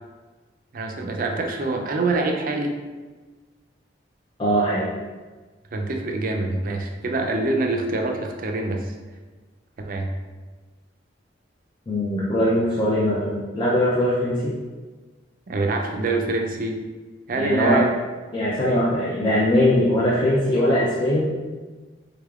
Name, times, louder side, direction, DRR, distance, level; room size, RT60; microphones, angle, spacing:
voice 1, 0.7-2.7 5.7-8.9 9.8-10.1 15.5-16.8 17.3-18.0, right 2 dB, 45° right, 3 dB, 0.4 m, -25 dB
voice 2, 4.4-4.9 11.9-14.5 17.3-17.8 18.3-21.3, equal, 25° left, -7 dB, 0.4 m, -21 dB
3.5 x 3.4 x 2.3 m, 1.3 s
head